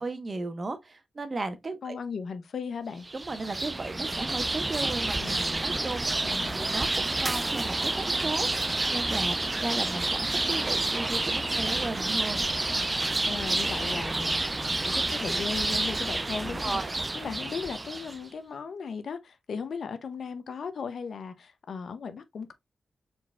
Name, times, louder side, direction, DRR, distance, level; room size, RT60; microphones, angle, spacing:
voice 1, 0.0-2.0 3.1-5.2 5.6-6.1 6.5-12.4 16.6-16.9, right 3 dB, 45° right, 1.0 m, -35 dB
voice 2, 1.8-3.1 5.2-5.9 6.2-6.7 13.2-16.8 17.1-22.5, left 5 dB, 75° left, 0.7 m, -37 dB
sound 1, 3.0-18.2, right 2 dB, 30° right, 0.4 m, -29 dB
4.7 x 3.9 x 2.3 m
cardioid pair, 50°, 0 cm